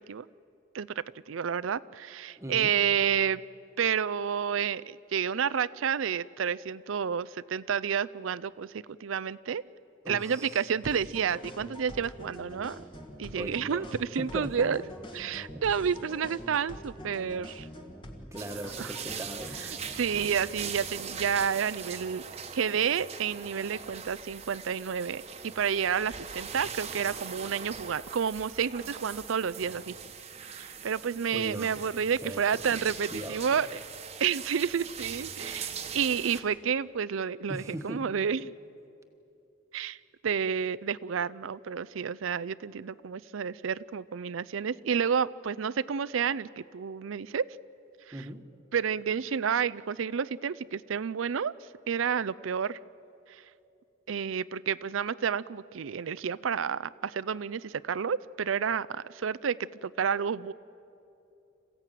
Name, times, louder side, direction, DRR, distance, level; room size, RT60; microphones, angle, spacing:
voice 1, 0.7-3.4 3.8-9.6 10.1-12.8 13.2-14.8 15.1-17.7 18.8-18.9 19.6-22.2 22.5-29.9 30.5-33.8 34.2-38.5 39.7-40.0 40.2-47.5 48.1-48.2 48.7-51.5 51.9-52.8 53.3-53.4 54.1-60.5, right 7 dB, 85° right, 17 dB, 0.5 m, -30 dB
voice 2, 2.4-2.7 10.0-10.7 13.3-14.8 15.5-15.6 18.3-19.7 31.3-31.9 32.2-32.8 33.1-33.6 37.5-38.0 48.1-48.4, right 1 dB, 15° right, 6 dB, 1.4 m, -39 dB
sound 1, 10.8-20.4, equal, 25° left, 1.7 m, -45 dB
sound 2, 18.4-36.4, right 6 dB, 30° right, 1.2 m, -41 dB
27.0 x 15.5 x 9.1 m, 2.8 s
head